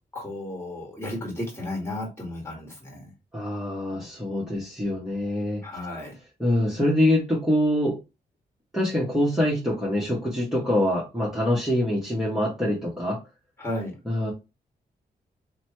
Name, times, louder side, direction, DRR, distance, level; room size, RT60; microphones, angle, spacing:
voice 1, 0.1-3.1 5.6-6.2 13.6-14.0, left 1 dB, 15° left, 0 dB, 1.8 m, -33 dB
voice 2, 3.3-5.6 6.4-8.0 8.7-13.2 14.1-14.3, left 1 dB, ahead, -5 dB, 1.1 m, -24 dB
2.9 x 2.2 x 2.9 m, 0.27 s
cardioid pair, 60°, 18 cm